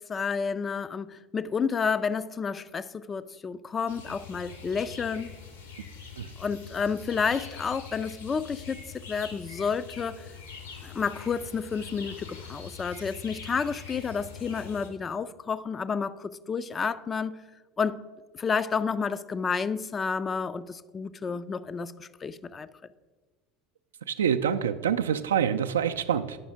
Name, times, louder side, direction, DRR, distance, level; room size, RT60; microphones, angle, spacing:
voice 1, 0.0-5.3 6.4-10.3 10.8-17.4 17.8-18.1 18.3-22.7, left 5 dB, 25° left, 0.3 m, -30 dB
sound 1, 3.9-14.9, left 5 dB, 80° left, 1.2 m, -44 dB
voice 2, 24.1-26.4, right 8 dB, 70° right, 0.3 m, -26 dB
9.3 x 5.5 x 4.7 m
figure-of-eight pair, 70°, 0 cm